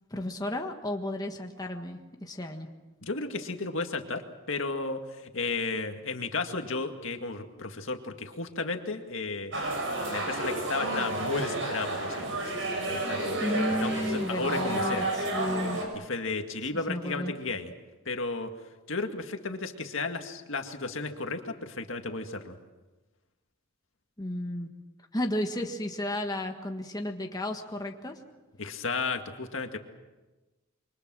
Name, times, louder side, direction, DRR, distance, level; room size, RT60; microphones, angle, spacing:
voice 1, 0.1-2.7 13.4-15.8 16.9-17.3 24.2-24.7 25.1-28.2, left 1 dB, 20° left, 3 dB, 1.6 m, -33 dB
voice 2, 3.0-4.2 4.5-9.5 10.1-13.4 13.8-15.1 15.9-17.7 18.1-18.5 18.9-22.6 28.6-29.8, left 3 dB, 70° left, 5 dB, 2.1 m, -33 dB
sound 1, 9.5-15.9, right 2 dB, 65° right, 6.9 m, -31 dB
27.0 x 24.5 x 6.3 m, 1.2 s
head